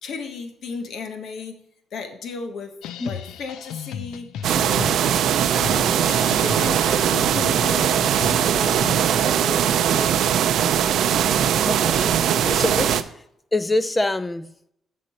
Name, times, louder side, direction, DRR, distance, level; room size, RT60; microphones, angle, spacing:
voice 1, 0.0-1.6 1.9-2.8 3.0-4.3 4.6-5.2 5.5-10.4, left 4 dB, 65° left, 7 dB, 1.1 m, -35 dB
sound 1, 2.8-9.1, left 9 dB, 85° left, 0.4 m, -36 dB
sound 2, 4.4-13.0, right 9 dB, 75° right, 0.5 m, -20 dB
voice 2, 11.6-12.2 12.4-13.0 13.5-14.5, left 2 dB, 20° left, 14 dB, 0.5 m, -24 dB
8.9 x 5.3 x 4.2 m, 0.74 s
cardioid pair, 90°, 0 cm